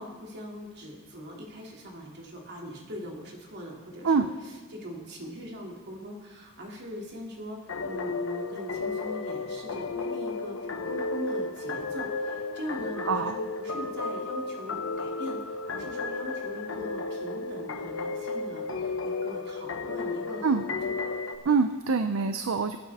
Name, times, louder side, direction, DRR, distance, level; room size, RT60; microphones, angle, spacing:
voice 1, 0.0-20.5 20.8-21.0, equal, 55° right, 0 dB, 2.7 m, -41 dB
sound 1, 7.7-21.4, left 3 dB, 70° left, 0.9 m, -33 dB
voice 2, 13.0-13.4 20.4-20.6 21.4-22.8, right 5 dB, 70° right, 9 dB, 0.6 m, -25 dB
22.5 x 8.9 x 3.6 m, 1.5 s
head